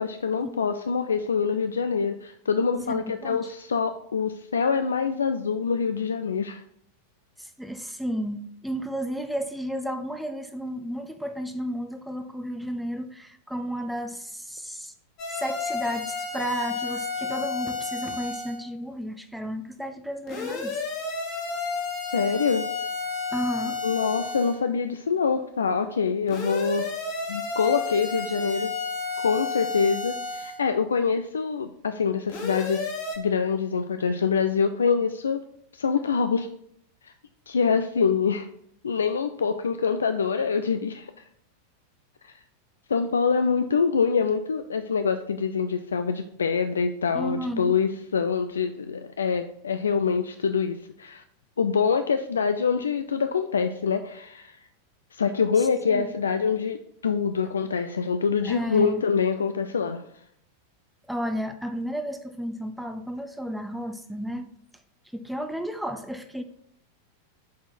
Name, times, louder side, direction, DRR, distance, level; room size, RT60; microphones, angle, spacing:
voice 1, 0.0-6.6 22.1-22.7 23.8-26.9 27.3-28.7 29.2-32.8 33.2-35.4 35.7-36.5 37.0-37.1 37.5-38.5 38.8-41.1 42.9-51.2 51.6-54.6 55.1-56.8 57.0-60.0, left 5 dB, 70° left, 9 dB, 0.3 m, -25 dB
voice 2, 2.9-3.5 7.4-14.9 15.3-20.8 23.3-23.8 47.1-47.8 55.6-56.1 58.4-59.0 61.1-64.5 65.1-66.4, equal, ahead, 8 dB, 0.5 m, -33 dB
sound 1, 15.2-18.6 20.3-24.6 26.3-30.6 32.3-33.2, left 4 dB, 40° left, 1.8 m, -31 dB
7.1 x 4.3 x 4.3 m, 0.70 s
figure-of-eight pair, 90°, 0 cm